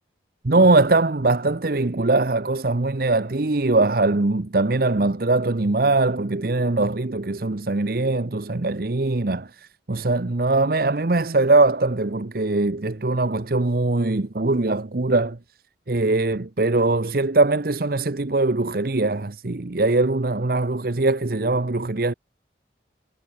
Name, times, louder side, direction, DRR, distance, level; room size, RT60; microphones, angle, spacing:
voice 1, 0.4-9.5 9.9-15.4 15.9-22.1, right 2 dB, 55° right, 0.9 m, -21 dB
head